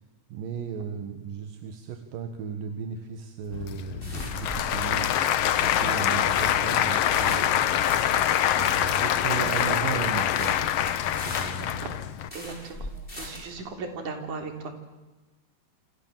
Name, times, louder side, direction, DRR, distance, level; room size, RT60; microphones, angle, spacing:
voice 1, 0.3-5.3 5.6-7.7 8.5-10.7 11.3-11.7, right 7 dB, 80° right, 7 dB, 3.3 m, -35 dB
sound 1, 3.4-13.6, left 1 dB, 15° left, 6.0 m, -41 dB
Applause / Crowd, 3.5-12.3, left 10 dB, 65° left, 1.6 m, -25 dB
voice 2, 12.3-12.9 13.1-14.7, right 4 dB, 60° right, 5 dB, 4.8 m, -37 dB
28.0 x 27.5 x 7.5 m, 1.1 s
omnidirectional pair, 4.0 m